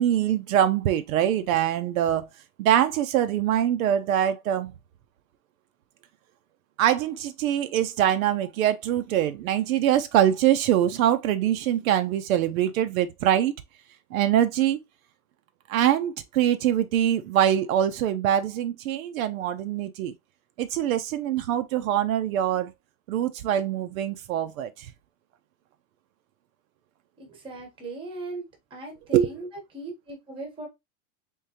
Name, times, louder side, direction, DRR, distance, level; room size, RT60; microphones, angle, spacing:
voice 1, 0.0-2.3 2.6-4.7 6.8-13.5 14.1-14.8 15.7-20.1 20.6-22.7 23.1-24.9 29.1-29.3, right 11 dB, 75° right, 0.7 m, -23 dB
voice 2, 27.2-28.4 28.7-30.7, right 2 dB, 10° right, 0.9 m, -38 dB
3.7 x 3.2 x 2.8 m
supercardioid pair, 165°, 42 cm